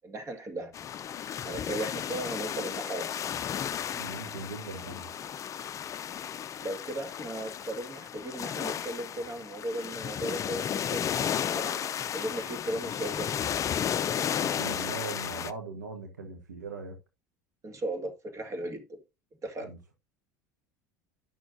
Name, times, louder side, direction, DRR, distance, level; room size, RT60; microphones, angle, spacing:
voice 1, 0.0-0.7 1.4-3.2 6.6-11.8 12.1-13.5 17.6-18.8 19.4-19.7, right 1 dB, 30° right, 1.9 m, -36 dB
sound 1, 0.7-15.5, left 9 dB, 35° left, 0.5 m, -33 dB
voice 2, 3.9-5.1 14.4-17.0 19.6-19.9, right 4 dB, 85° right, 1.2 m, -40 dB
10.5 x 6.2 x 2.6 m
hypercardioid pair, 70°, 9 cm